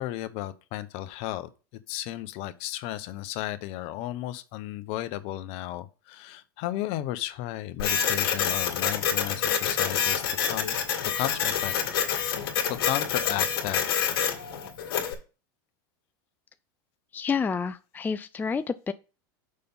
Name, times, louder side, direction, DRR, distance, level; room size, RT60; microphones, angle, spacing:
voice 1, 0.0-1.5 1.9-10.8 11.1-11.7 12.7-13.8, left 14 dB, 55° left, 0.9 m, -34 dB
Printer, 7.8-15.1, left 8 dB, 75° left, 2.2 m, -27 dB
voice 2, 17.1-18.9, left 5 dB, 15° left, 0.4 m, -29 dB
6.7 x 5.4 x 5.5 m
hypercardioid pair, 110°, 12 cm